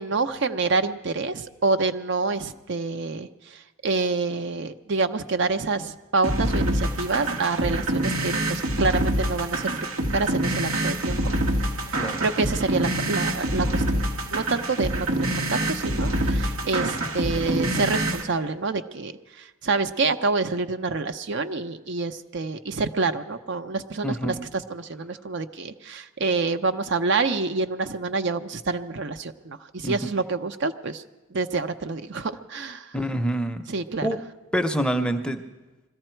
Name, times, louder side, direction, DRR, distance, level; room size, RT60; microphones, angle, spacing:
voice 1, 0.0-9.9 10.1-11.2 11.9-13.8 14.3-19.1 19.4-31.0 31.3-33.0 33.7-34.1, right 3 dB, 55° right, 9 dB, 0.6 m, -27 dB
sound 1, 6.2-18.2, right 1 dB, 80° right, 1.6 m, -26 dB
voice 2, 24.0-24.4 29.8-30.0 32.9-33.6 34.0-34.2 34.5-35.4, right 1 dB, 5° left, 7 dB, 0.7 m, -26 dB
21.5 x 14.0 x 4.5 m, 1.2 s
head